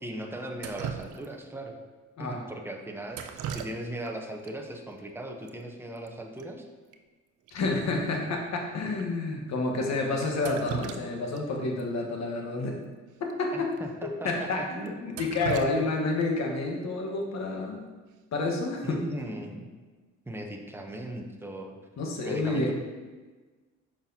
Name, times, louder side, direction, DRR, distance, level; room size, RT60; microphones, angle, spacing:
voice 1, 0.0-1.8 2.2-6.6 13.5-14.9 15.6-16.0 18.8-19.7 20.3-21.8 22.2-22.7, right 1 dB, 10° right, 2 dB, 0.8 m, -38 dB
Drip, 0.6-1.6 3.1-4.1 4.4-4.5 5.5-5.6 5.8-6.1 6.4-6.5 6.9-7.0 7.5-7.6 8.1-8.2 8.9-9.1 10.2-11.4 11.8-11.9 13.2-13.3 13.7-13.8 14.3-14.4 14.9-16.5 18.5-18.8 19.2-19.6, right 8 dB, 85° right, 0.5 m, -39 dB
voice 2, 7.5-12.7 13.2-13.5 14.0-17.8 18.3-19.0 22.0-22.7, left 3 dB, 60° left, 1 dB, 1.3 m, -29 dB
6.6 x 6.0 x 2.8 m, 1.3 s
cardioid pair, 90°, 30 cm